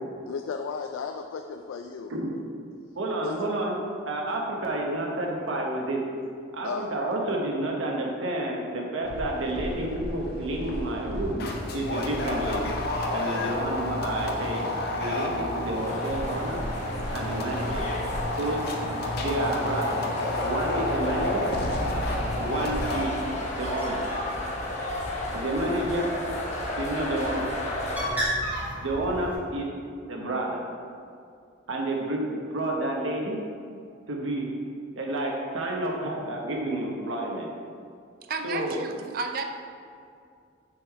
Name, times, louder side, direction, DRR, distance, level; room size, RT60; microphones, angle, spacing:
voice 1, 0.3-2.1 3.2-3.3 6.6-6.9, left 5 dB, 85° left, 5 dB, 0.3 m, -34 dB
voice 2, 3.0-3.8 4.1-6.0 6.5-12.7 13.1-14.7 15.0-16.6 17.1-17.9 18.4-18.6 19.2-20.0 20.4-21.4 22.4-23.1 23.6-24.0 25.3-26.1 26.8-27.5 28.8-29.7 30.1-30.7 31.7-33.4 34.1-34.5 35.0-37.5 38.4-38.8, right 1 dB, 80° right, -1 dB, 1.0 m, -30 dB
sound 1, 9.1-23.0, left 1 dB, 50° left, 0.6 m, -30 dB
sound 2, 15.7-28.1, left 1 dB, 35° left, 1.0 m, -34 dB
Bird, 23.2-29.3, equal, 10° right, 1.3 m, -35 dB
voice 3, 38.2-39.4, right 4 dB, 50° right, 5 dB, 0.4 m, -32 dB
6.6 x 3.7 x 4.6 m, 2.4 s
head